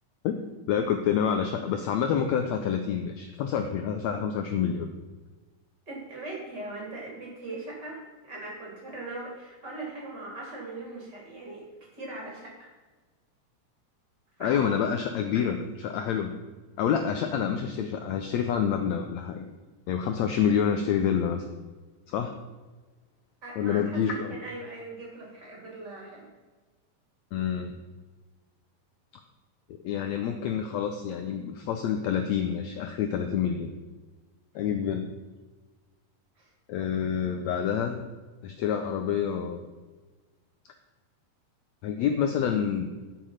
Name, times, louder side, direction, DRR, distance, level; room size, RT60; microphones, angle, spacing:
voice 1, 0.7-4.9 14.4-16.3 16.8-19.4 19.9-21.4 22.1-22.3 23.6-24.4 27.3-27.7 29.8-33.7 34.5-35.0 36.7-38.0 38.4-39.7 41.8-43.1, left 8 dB, 80° left, 6 dB, 1.6 m, -27 dB
voice 2, 5.9-8.0 8.2-11.6 11.9-12.7 14.4-14.7 23.4-26.3 34.5-34.6 36.3-36.5, right 2 dB, 30° right, -3 dB, 3.3 m, -40 dB
12.0 x 6.8 x 5.7 m, 1.3 s
omnidirectional pair, 3.9 m